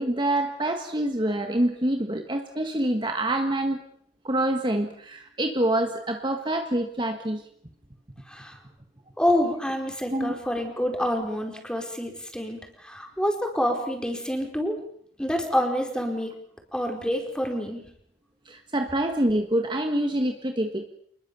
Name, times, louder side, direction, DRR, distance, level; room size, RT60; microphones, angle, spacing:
voice 1, 0.0-3.8 4.2-7.4 10.1-10.3 18.5-20.9, right 1 dB, 25° right, 5 dB, 1.7 m, -26 dB
voice 2, 9.2-14.8 15.2-16.3 16.7-17.8, equal, 5° left, 3 dB, 4.7 m, -27 dB
28.0 x 21.5 x 7.1 m, 0.65 s
head